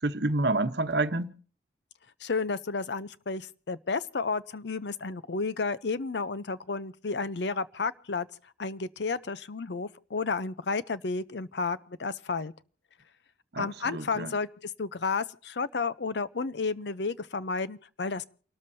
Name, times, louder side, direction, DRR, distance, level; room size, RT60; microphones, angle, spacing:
voice 1, 0.0-1.3 13.5-14.3, right 2 dB, 65° right, 1.0 m, -28 dB
voice 2, 2.2-8.3 8.6-12.5 13.6-18.2, left 4 dB, 70° left, 0.6 m, -32 dB
29.5 x 13.0 x 2.7 m
head